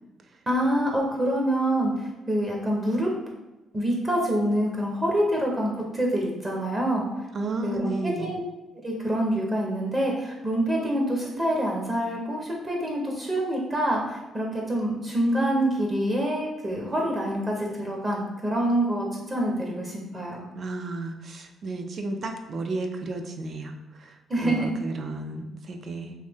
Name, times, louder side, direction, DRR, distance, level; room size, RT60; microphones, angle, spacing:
voice 1, 0.5-3.1 3.7-7.3 7.6-8.4 8.8-20.4 24.3-24.7, right 1 dB, 25° right, -1 dB, 0.8 m, -26 dB
voice 2, 7.3-8.3 20.5-26.1, right 2 dB, 50° right, 5 dB, 0.4 m, -33 dB
3.2 x 2.7 x 3.4 m, 1.0 s
cardioid pair, 90°, 0 cm